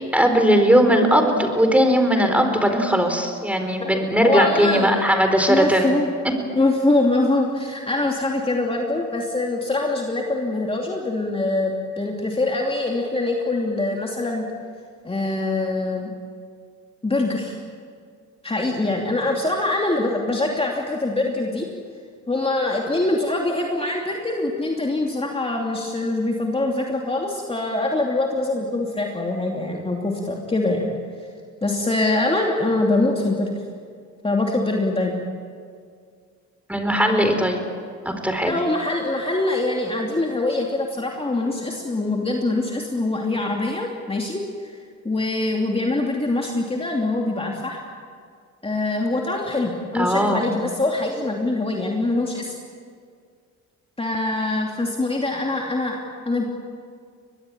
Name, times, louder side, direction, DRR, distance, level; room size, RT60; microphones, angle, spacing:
voice 1, 0.1-5.9 36.7-37.6 38.0-38.5 49.9-50.5, equal, 5° right, 5 dB, 4.4 m, -18 dB
voice 2, 4.2-4.9 5.5-6.1 6.5-14.4 15.0-16.1 17.0-17.6 18.4-21.7 22.3-30.9 31.6-33.5 34.2-35.2 38.4-44.7 45.0-47.8 48.6-52.5 54.0-56.4, left 2 dB, 20° left, 0 dB, 2.8 m, -24 dB
23.5 x 20.5 x 8.8 m, 2.1 s
cardioid pair, 90°, 30 cm